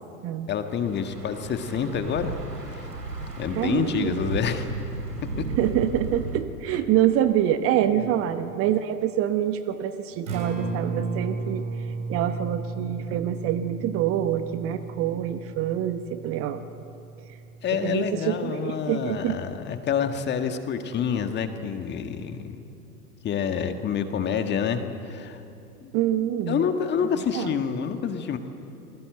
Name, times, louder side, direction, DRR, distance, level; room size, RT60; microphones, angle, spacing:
voice 1, 0.5-2.9 3.2-4.7 7.8-8.1 17.6-22.6 23.2-25.4 25.8-25.9 26.5-28.4, left 7 dB, 20° left, 7 dB, 1.7 m, -28 dB
Thunder / Bicycle, 0.7-6.4, right 3 dB, 85° right, 3.1 m, -34 dB
voice 2, 3.5-4.2 5.6-11.6 12.1-16.6 17.8-19.4 25.9-26.6 27.3-27.6, right 11 dB, 30° right, 10 dB, 1.0 m, -26 dB
Acoustic guitar, 10.1-18.3, right 4 dB, 55° right, 7.7 m, -35 dB
27.5 x 21.0 x 8.0 m, 2.8 s
figure-of-eight pair, 95°, 46 cm